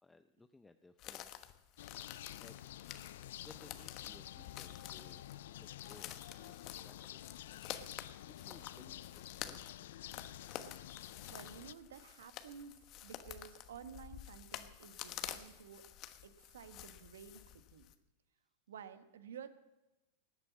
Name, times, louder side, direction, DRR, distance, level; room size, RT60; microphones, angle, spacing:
voice 1, 0.0-1.4 2.4-5.2 5.5-7.2 8.2-10.0, left 3 dB, 10° left, 9 dB, 0.6 m, -61 dB
sound 1, 1.0-17.9, left 12 dB, 45° left, 1.2 m, -50 dB
sound 2, 1.8-11.7, left 13 dB, 70° left, 0.4 m, -50 dB
voice 2, 11.3-15.8 16.2-17.4 17.7-17.9 18.7-19.5, right 7 dB, 75° right, 11 dB, 1.2 m, -52 dB
19.0 x 8.4 x 7.3 m, 1.0 s
hypercardioid pair, 100°, 0 cm